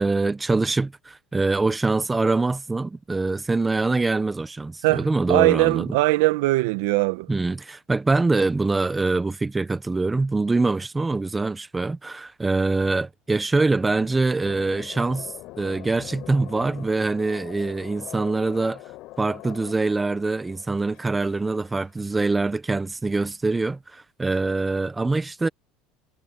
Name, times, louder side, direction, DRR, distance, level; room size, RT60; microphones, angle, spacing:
voice 1, 0.0-6.0 7.3-15.3 15.6-18.8 19.2-25.5, right 3 dB, 10° right, 1.0 m, -24 dB
voice 2, 4.8-7.3, right 21 dB, 80° right, 1.2 m, -21 dB
sound 1, 13.4-21.8, left 18 dB, 60° left, 6.0 m, -43 dB
supercardioid pair, 130°, 0 cm